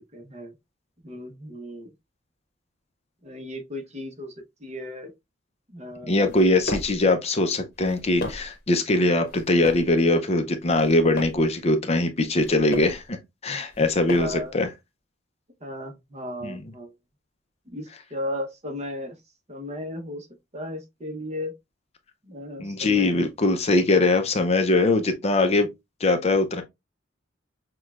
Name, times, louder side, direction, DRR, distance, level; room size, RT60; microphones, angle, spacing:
voice 1, 0.1-0.5 1.0-1.9 3.2-4.3 4.6-5.1 5.7-6.3 14.1-14.5 15.6-16.9 17.7-19.1 19.5-20.3 20.5-21.5 22.2-23.3, left 1 dB, 35° right, 0.9 m, -35 dB
voice 2, 6.1-13.2 13.4-14.7 16.4-16.7 22.6-25.7 26.0-26.6, left 2 dB, 35° left, 0.5 m, -22 dB
sound 1, 6.2-7.0 7.7-8.6 9.3-9.9 10.6-11.5 12.2-13.0 13.7-14.5, left 2 dB, 50° left, 0.9 m, -35 dB
6.2 x 2.3 x 2.3 m
head